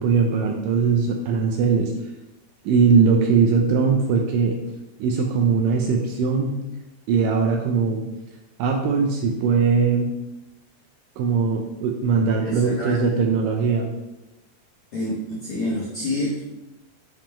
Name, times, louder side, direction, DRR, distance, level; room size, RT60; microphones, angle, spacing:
voice 1, 0.0-1.9 2.7-4.6 5.0-6.6 7.1-8.0 8.6-10.1 11.2-13.9, right 5 dB, 80° right, 2 dB, 2.0 m, -20 dB
voice 2, 12.2-13.0 14.9-16.5, left 1 dB, 75° left, -6 dB, 1.3 m, -28 dB
7.3 x 3.7 x 4.3 m, 0.98 s
omnidirectional pair, 4.3 m